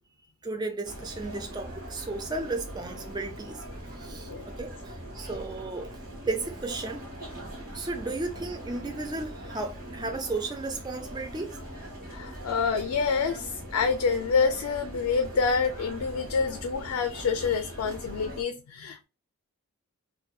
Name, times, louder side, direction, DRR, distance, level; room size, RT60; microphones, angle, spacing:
voice 1, 0.4-3.6 4.0-6.0 6.3-7.0 7.7-11.6, right 3 dB, 20° right, 0.3 m, -34 dB
sound 1, 0.8-18.4, right 1 dB, 40° right, 1.1 m, -41 dB
voice 2, 12.1-19.0, left 5 dB, 80° left, 0.3 m, -27 dB
2.6 x 2.1 x 2.2 m
head